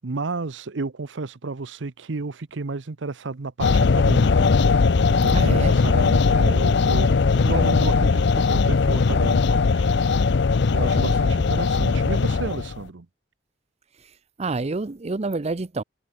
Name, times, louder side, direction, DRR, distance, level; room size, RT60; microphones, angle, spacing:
voice 1, 0.0-4.5 5.1-10.2 10.7-13.1, right 3 dB, 70° right, 0.8 m, -32 dB
sound 1, 3.6-12.8, left 4 dB, 65° left, 0.5 m, -19 dB
voice 2, 5.3-5.8 14.4-15.8, right 3 dB, 35° right, 0.6 m, -27 dB
head